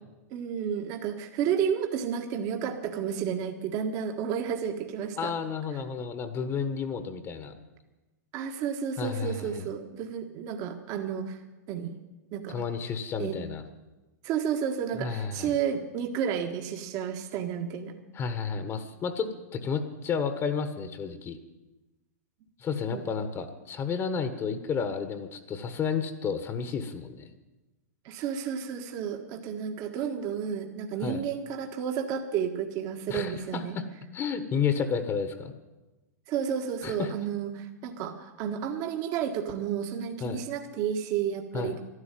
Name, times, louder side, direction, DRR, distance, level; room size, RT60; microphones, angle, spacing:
voice 1, 0.3-5.3 8.3-11.4 11.7-12.0 12.3-12.6 13.2-13.4 14.2-17.9 22.9-23.0 28.0-33.8 36.3-41.7, right 8 dB, 45° right, 4 dB, 1.5 m, -31 dB
voice 2, 5.2-7.6 9.0-9.7 12.5-13.6 15.0-15.5 18.1-21.4 22.6-27.3 31.0-31.2 33.1-33.9 34.1-35.5 36.8-37.1 40.2-40.4 41.5-41.8, left 6 dB, 30° left, 9 dB, 1.4 m, -31 dB
12.5 x 11.5 x 9.1 m, 1.1 s
hypercardioid pair, 115°, 9 cm